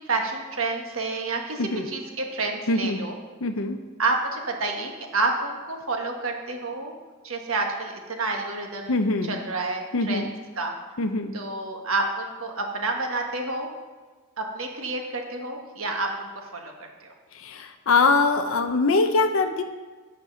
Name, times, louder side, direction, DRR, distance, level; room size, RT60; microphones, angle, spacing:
voice 1, 0.0-3.2 4.0-6.9 7.2-10.7 11.3-13.7 14.4-17.1, right 3 dB, 80° right, 3 dB, 1.4 m, -29 dB
voice 2, 2.7-3.0 3.4-3.8 8.9-9.4 9.9-10.3 11.0-11.3 17.3-19.6, left 3 dB, 75° left, 6 dB, 0.6 m, -23 dB
10.0 x 6.1 x 5.7 m, 1.3 s
head